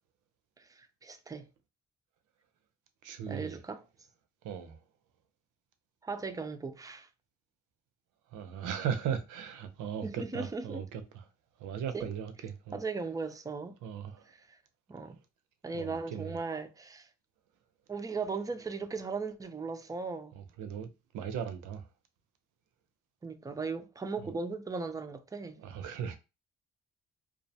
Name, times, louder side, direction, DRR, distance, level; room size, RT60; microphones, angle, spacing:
voice 1, 0.6-1.5 3.3-3.8 6.0-7.1 10.0-10.8 11.9-12.1 12.7-13.8 14.5-14.6 14.9-15.2 15.6-17.1 17.9-20.3 23.2-25.6, right 4 dB, 10° right, 0.3 m, -37 dB
voice 2, 3.0-3.6 4.4-4.8 8.3-11.2 11.6-12.8 13.8-14.3 15.7-16.4 20.3-21.9 24.2-24.3 25.6-26.2, right 8 dB, 85° right, 0.5 m, -38 dB
2.4 x 2.0 x 2.7 m
cardioid pair, 90°, 30 cm